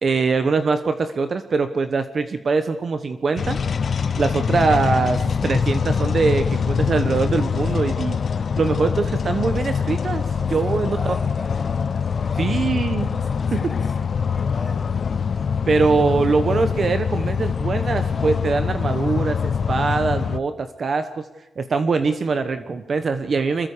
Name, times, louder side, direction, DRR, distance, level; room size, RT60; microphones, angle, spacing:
voice 1, 0.0-3.6 4.2-8.2 8.6-10.2 10.5-11.1 12.4-13.1 13.5-13.6 15.7-21.2 21.6-23.7, right 4 dB, 45° right, 9 dB, 1.1 m, -22 dB
sound 1, 3.4-20.4, left 6 dB, 50° left, 0.8 m, -24 dB
voice 2, 10.4-11.6 12.0-14.0 14.3-14.9, left 1 dB, 5° left, 0 dB, 4.5 m, -41 dB
26.0 x 21.0 x 5.1 m, 1.0 s
wide cardioid pair, 115°, 0 cm